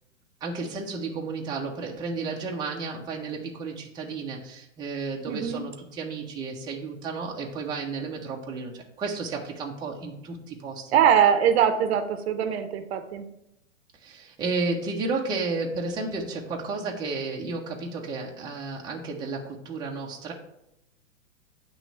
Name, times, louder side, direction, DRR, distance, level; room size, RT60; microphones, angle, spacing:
voice 1, 0.4-11.0 14.0-20.3, right 3 dB, 10° right, -2 dB, 0.6 m, -32 dB
voice 2, 5.3-5.6 10.9-13.2, right 8 dB, 50° right, 9 dB, 0.7 m, -22 dB
8.7 x 3.1 x 4.4 m, 0.83 s
hypercardioid pair, 135°, 40 cm